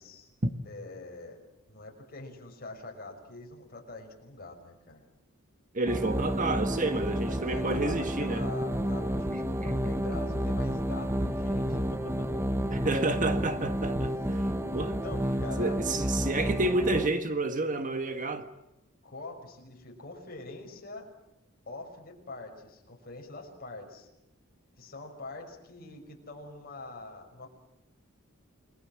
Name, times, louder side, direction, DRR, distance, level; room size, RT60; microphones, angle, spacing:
voice 1, 0.6-5.0 7.3-12.3 15.0-16.0 19.0-21.1 21.7-24.1 24.8-27.5, left 2 dB, 45° left, 6.0 m, -44 dB
voice 2, 5.7-8.5 9.3-9.7 12.7-14.4 14.7-15.0 15.6-18.5, right 2 dB, 40° right, 1.5 m, -30 dB
sound 1, 5.9-17.1, equal, 10° right, 1.2 m, -30 dB
29.0 x 21.5 x 7.6 m
head